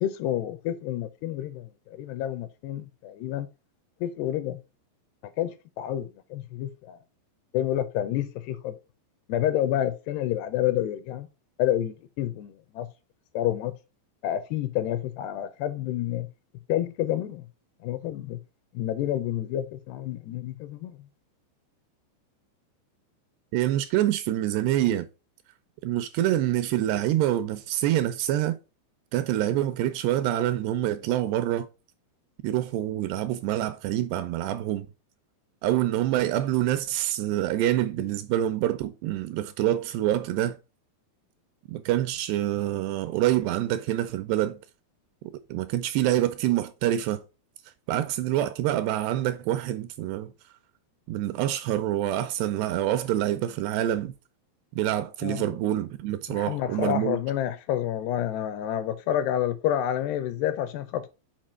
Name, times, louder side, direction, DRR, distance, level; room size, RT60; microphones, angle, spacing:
voice 1, 0.0-3.5 4.0-4.6 5.4-7.0 7.5-8.7 9.3-11.3 11.6-12.9 13.3-13.7 14.2-16.3 16.7-17.4 17.8-18.4 18.7-21.0 55.2-55.4 56.3-61.1, left 12 dB, 80° left, 2.5 m, -29 dB
voice 2, 23.5-25.1 25.8-28.6 29.1-31.7 32.4-34.9 35.6-40.6 41.7-44.6 45.5-47.2 47.9-50.3 51.1-54.1 54.7-57.2, right 13 dB, 85° right, 2.5 m, -26 dB
7.6 x 4.9 x 5.0 m
omnidirectional pair, 5.2 m